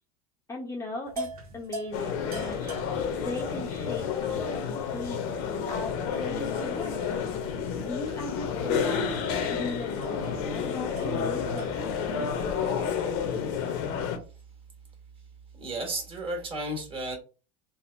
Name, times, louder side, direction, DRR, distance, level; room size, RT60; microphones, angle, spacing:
voice 1, 0.5-2.7 3.1-5.9 6.2-7.1 7.8-9.1 9.5-13.0, left 2 dB, 15° left, -1 dB, 0.6 m, -38 dB
sound 1, 1.0-12.0, right 1 dB, 90° right, 0.7 m, -44 dB
sound 2, 1.9-14.2, left 6 dB, 60° left, 0.7 m, -30 dB
voice 2, 15.5-17.2, right 1 dB, 30° right, 1 dB, 1.4 m, -33 dB
3.4 x 2.1 x 2.5 m, 0.33 s
hypercardioid pair, 105°, 19 cm